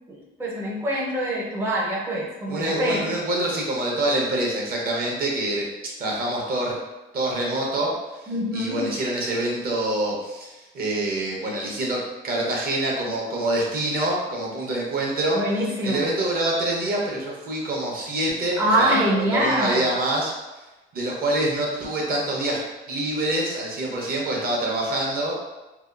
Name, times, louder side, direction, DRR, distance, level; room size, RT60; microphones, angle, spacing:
voice 1, 0.1-3.1 8.3-8.9 15.3-16.0 18.6-19.9, equal, 10° right, -4 dB, 0.4 m, -24 dB
voice 2, 2.5-5.7 6.0-6.7 7.1-15.4 15.8-20.3 20.9-22.6 22.9-25.3, right 1 dB, 50° right, -2 dB, 0.7 m, -26 dB
2.8 x 2.2 x 2.3 m, 1.1 s
cardioid pair, 120°, 20 cm